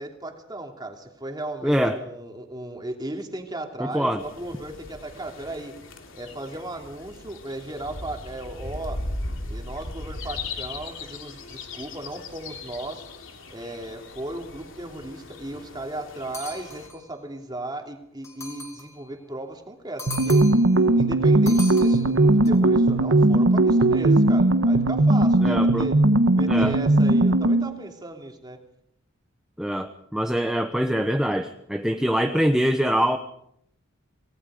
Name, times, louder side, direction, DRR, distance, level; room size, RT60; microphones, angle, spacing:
voice 1, 0.0-5.7 6.1-9.0 9.5-13.0 13.5-20.4 21.0-26.0 26.3-28.6, right 1 dB, 20° right, 3 dB, 2.9 m, -36 dB
voice 2, 1.6-2.0 3.8-4.2 25.4-25.9 26.5-26.7 29.6-33.2, equal, 5° right, 6 dB, 0.9 m, -24 dB
sound 1, 4.2-16.9, left 2 dB, 70° left, 3.0 m, -38 dB
sound 2, 16.3-17.1 18.2-19.0 20.0-20.8 21.5-22.5, left 2 dB, 15° left, 4.0 m, -38 dB
sound 3, 20.1-27.7, right 2 dB, 75° right, 1.3 m, -18 dB
28.5 x 19.0 x 5.0 m, 0.72 s
head